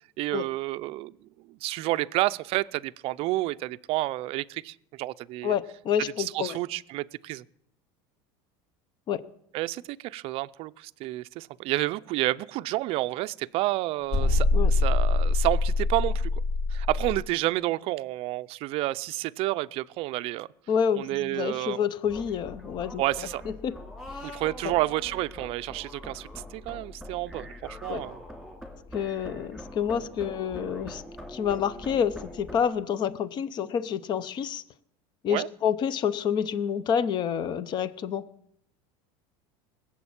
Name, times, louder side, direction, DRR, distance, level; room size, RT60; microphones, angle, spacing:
voice 1, 0.2-1.1 1.5-5.5 6.2-7.4 9.5-16.3 16.7-20.5 20.9-21.8 23.0-23.4 24.2-28.2 35.3-35.5, right 18 dB, 45° right, 14 dB, 0.5 m, -30 dB
voice 2, 5.4-6.6 9.1-9.2 14.5-14.7 20.7-23.8 24.2-24.3 24.6-24.7 27.9-28.0 28.9-31.0 31.3-34.6 35.2-38.3, left 8 dB, 35° left, 17 dB, 0.7 m, -28 dB
sound 1, 14.1-17.2, left 3 dB, 60° left, 4.7 m, -24 dB
sound 2, 22.0-32.6, left 1 dB, ahead, 2.6 m, -43 dB
20.0 x 7.4 x 8.7 m, 0.74 s
cardioid pair, 155°, 14 cm